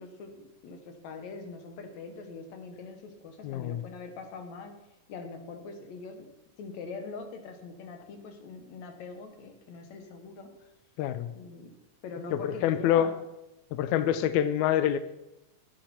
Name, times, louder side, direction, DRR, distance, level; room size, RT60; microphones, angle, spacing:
voice 1, 0.0-4.8 5.1-6.3 6.6-10.7 11.3-11.7 12.0-13.2, left 4 dB, 65° left, 6 dB, 2.5 m, -43 dB
voice 2, 3.4-3.8 11.0-11.3 12.3-13.1 13.7-15.0, left 10 dB, 85° left, 12 dB, 1.7 m, -26 dB
12.0 x 10.5 x 4.3 m, 0.93 s
omnidirectional pair, 3.8 m